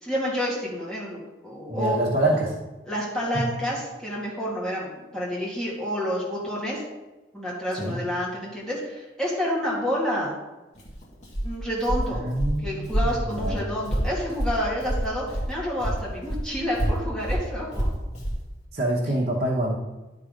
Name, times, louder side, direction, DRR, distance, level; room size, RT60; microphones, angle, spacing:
voice 1, 0.0-2.0 2.9-6.8 7.3-10.4 11.4-12.3 12.6-18.0, equal, 5° left, -7 dB, 2.2 m, -29 dB
voice 2, 1.7-2.5 3.3-3.5 7.8-8.0 12.1-13.7 18.7-19.8, right 1 dB, 55° right, -5 dB, 1.3 m, -26 dB
Walk footsteps, 10.7-15.5 15.8-18.4, right 1 dB, 40° left, 2.0 m, -27 dB
11.5 x 4.1 x 5.2 m, 1.1 s
head